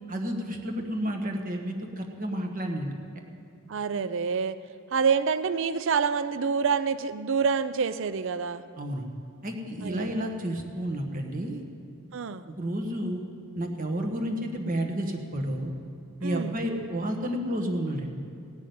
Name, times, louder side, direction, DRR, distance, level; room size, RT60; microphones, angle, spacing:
voice 1, 0.1-2.9 8.8-9.1 9.4-11.6 12.5-13.2 13.5-15.7 16.2-18.2, equal, 40° right, 2 dB, 1.4 m, -31 dB
voice 2, 3.7-4.6 4.9-8.6 9.8-10.2 12.1-12.4 16.2-16.6, right 6 dB, 60° right, 13 dB, 0.5 m, -27 dB
16.5 x 6.2 x 9.3 m, 2.4 s
head